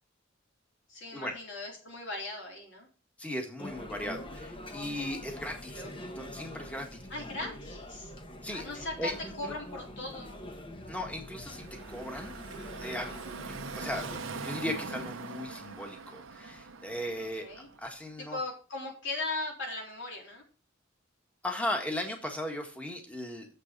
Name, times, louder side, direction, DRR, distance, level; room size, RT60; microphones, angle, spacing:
voice 1, 0.9-2.9 5.7-5.9 7.1-8.1 8.5-9.1 9.4-10.4 17.2-17.7 18.3-20.4, left 2 dB, 65° left, -1 dB, 3.7 m, -38 dB
voice 2, 3.2-7.3 8.4-8.7 9.0-9.5 10.9-12.3 12.8-13.1 13.7-14.0 14.4-17.5 17.8-18.4 21.4-23.5, left 1 dB, 5° left, 3 dB, 1.7 m, -37 dB
sound 1, 3.6-14.2, left 1 dB, 25° left, 1.1 m, -44 dB
Car passing by / Traffic noise roadway noise, 11.0-18.0, right 4 dB, 80° right, 1.0 m, -42 dB
7.5 x 6.7 x 5.3 m, 0.34 s
head